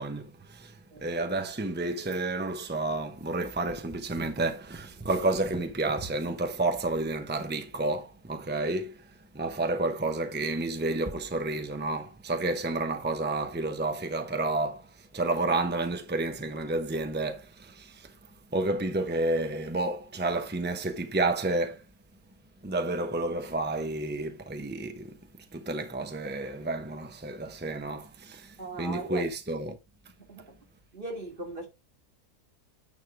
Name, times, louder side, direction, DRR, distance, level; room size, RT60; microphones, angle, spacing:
voice 1, 0.0-21.9 22.6-25.2 25.5-29.8, right 2 dB, 15° right, 0.4 m, -30 dB
voice 2, 28.6-29.3 30.3-30.6 30.9-31.7, right 2 dB, 30° right, 2.5 m, -38 dB
9.5 x 3.7 x 4.6 m
omnidirectional pair, 1.7 m